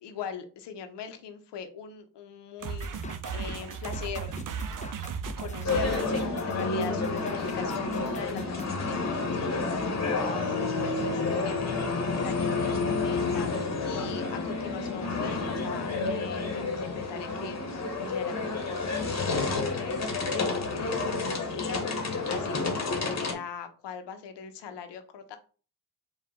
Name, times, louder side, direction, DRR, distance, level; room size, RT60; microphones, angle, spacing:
voice 1, 0.0-4.4 5.4-25.4, left 7 dB, 85° left, 8 dB, 0.8 m, -41 dB
sound 1, 2.6-6.4, right 6 dB, 50° right, 0.6 m, -35 dB
sound 2, 2.8-8.7, left 1 dB, 20° left, 0.6 m, -43 dB
sound 3, 5.6-23.3, left 3 dB, 40° left, 1.1 m, -30 dB
4.8 x 2.4 x 3.6 m, 0.38 s
cardioid pair, 75°, 40 cm